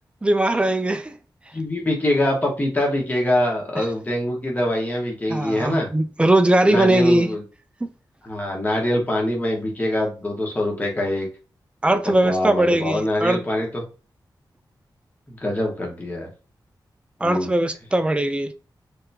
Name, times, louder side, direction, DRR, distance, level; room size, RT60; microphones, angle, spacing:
voice 1, 0.2-1.2 3.8-3.9 5.3-7.3 7.8-7.9 11.8-13.4 17.2-18.5, right 1 dB, 15° right, 0.5 m, -20 dB
voice 2, 1.5-5.9 6.7-7.4 8.2-11.3 12.0-13.8 15.3-16.3 17.2-17.5, left 1 dB, 20° left, 1.3 m, -24 dB
3.4 x 3.4 x 2.7 m
wide cardioid pair, 110°, 8 cm